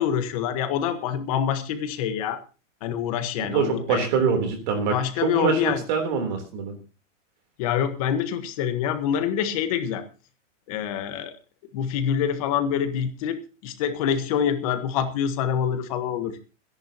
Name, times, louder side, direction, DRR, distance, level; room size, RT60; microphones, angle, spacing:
voice 1, 0.0-2.4 2.8-4.1 4.9-5.8 7.6-10.1 10.7-11.3 11.7-16.4, left 8 dB, 30° left, 9 dB, 1.3 m, -26 dB
voice 2, 3.4-6.8, right 5 dB, 35° right, 5 dB, 3.5 m, -24 dB
26.5 x 11.0 x 2.9 m, 0.34 s
supercardioid pair, 180°, 37 cm